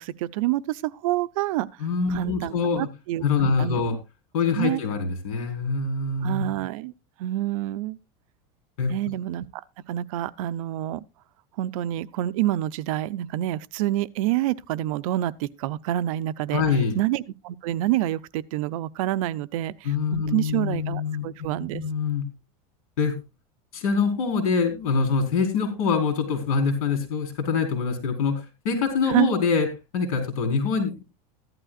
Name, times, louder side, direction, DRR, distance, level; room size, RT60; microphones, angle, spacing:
voice 1, 0.0-1.7 2.1-3.8 4.5-4.8 6.2-6.9 7.2-8.0 8.9-9.6 9.9-11.0 11.6-16.6 17.0-21.8 29.1-29.3, right 14 dB, 70° right, 0.6 m, -27 dB
voice 2, 1.8-2.9 3.2-4.0 4.3-6.4 8.8-8.9 16.5-17.0 19.8-21.3 21.7-22.3 23.0-23.1 23.7-29.7 29.9-31.0, left 5 dB, 75° left, 4.9 m, -24 dB
15.0 x 12.0 x 2.4 m
supercardioid pair, 160°, 18 cm